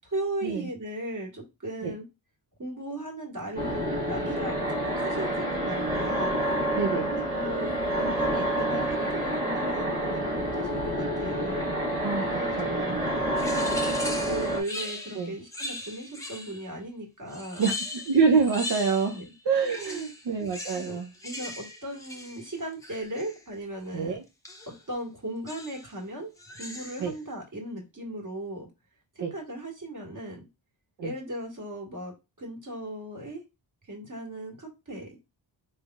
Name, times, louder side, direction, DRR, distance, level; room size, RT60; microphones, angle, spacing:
voice 1, 0.0-2.0 2.6-6.4 7.1-11.7 12.2-17.7 19.1-19.3 19.9-20.0 20.7-21.0 21.2-24.2 24.7-26.3 26.6-28.7 29.1-30.5 31.0-33.4 33.9-35.2, right 1 dB, 40° right, 1.7 m, -37 dB
Nightmare realm, 3.5-14.6, right 1 dB, 15° right, 1.4 m, -28 dB
voice 2, 6.7-7.1 12.0-12.2 12.6-13.1 15.2-15.4 17.6-17.7 18.0-19.1 19.5-21.1 23.9-24.2 27.0-27.1 29.2-29.3 31.0-31.1, right 5 dB, 65° right, 0.7 m, -26 dB
sound 1, 13.4-16.7 17.3-19.3 19.6-23.4 24.4-24.8 25.5-25.9 26.4-27.2, left 2 dB, 5° left, 0.9 m, -39 dB
4.1 x 3.4 x 2.3 m
cardioid pair, 75°, 45 cm